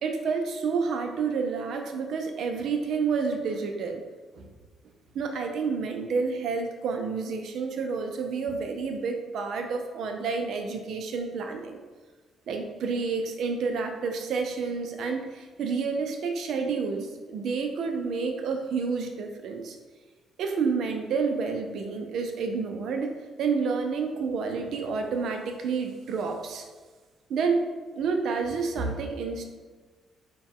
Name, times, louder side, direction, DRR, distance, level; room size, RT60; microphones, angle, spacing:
voice 1, 0.0-4.0 4.3-4.5 5.1-11.8 12.5-19.8 20.4-23.1 23.4-26.7 27.3-27.6 27.9-29.4, right 5 dB, 70° right, 4 dB, 0.5 m, -29 dB
4.1 x 2.3 x 3.6 m, 1.4 s
cardioid pair, 90°, 0 cm